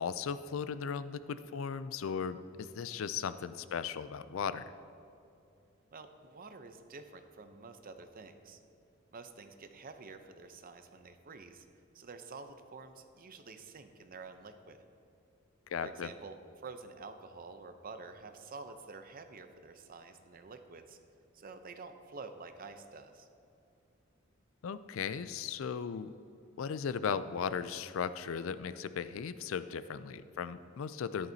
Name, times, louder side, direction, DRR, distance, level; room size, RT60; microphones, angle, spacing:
voice 1, 0.0-4.6 15.7-16.1 24.6-26.1 26.6-31.3, left 6 dB, 70° left, 14 dB, 0.4 m, -37 dB
voice 2, 5.9-8.6 9.1-11.7 11.9-14.8 15.8-16.4 16.6-21.0 21.3-23.3, right 4 dB, 45° right, 8 dB, 0.7 m, -49 dB
13.5 x 11.0 x 2.8 m, 2.7 s
head